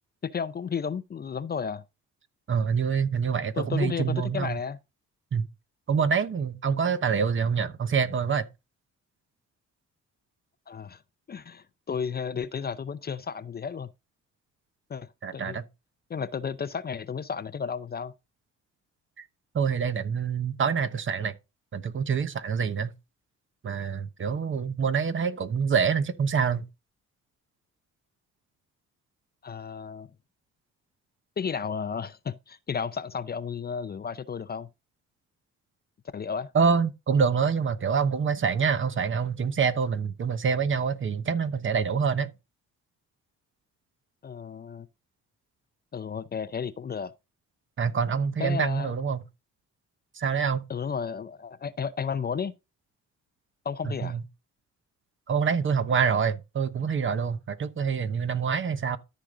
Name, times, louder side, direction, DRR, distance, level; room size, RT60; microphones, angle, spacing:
voice 1, 0.2-1.8 3.6-4.8 10.7-11.0 11.3-13.9 14.9-15.6 16.1-18.1 29.4-30.1 31.4-34.7 36.1-36.5 44.2-44.9 45.9-47.1 48.4-49.0 50.7-52.6 53.6-54.2, left 6 dB, 30° left, 0.6 m, -33 dB
voice 2, 2.5-4.6 5.3-5.5 5.9-8.5 15.2-15.6 19.2-19.3 19.5-21.3 21.7-22.9 23.6-26.6 36.5-42.3 47.8-49.2 50.1-50.6 53.8-54.2 55.3-59.0, right 6 dB, 40° right, 1.1 m, -26 dB
13.0 x 5.3 x 3.8 m
cardioid pair, 90°, 30 cm